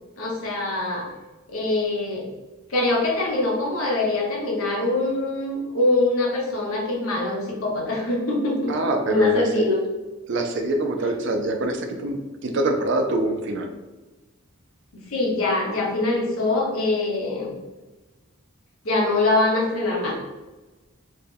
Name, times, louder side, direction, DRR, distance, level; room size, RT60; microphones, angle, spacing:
voice 1, 0.2-1.1 1.5-2.3 2.7-8.8 9.1-9.8 15.1-17.5 18.8-20.1, left 2 dB, 90° left, -3 dB, 1.0 m, -23 dB
voice 2, 8.7-9.7 10.3-13.7, right 2 dB, 55° right, 4 dB, 0.5 m, -24 dB
4.5 x 2.2 x 3.3 m, 1.2 s
head